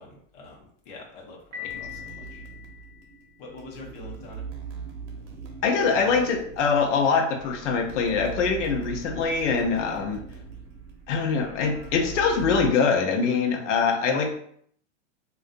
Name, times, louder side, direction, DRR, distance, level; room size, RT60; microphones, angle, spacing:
voice 1, 0.0-2.4 3.4-4.5, left 3 dB, 35° left, -2 dB, 0.8 m, -45 dB
Piano, 1.5-3.5, left 10 dB, 30° right, 0.7 m, -41 dB
sound 1, 1.6-12.7, right 6 dB, 75° right, 0.9 m, -41 dB
voice 2, 5.6-10.2 11.1-14.4, left 5 dB, 80° left, 3 dB, 0.7 m, -23 dB
3.7 x 2.3 x 2.5 m, 0.63 s
supercardioid pair, 175°, 36 cm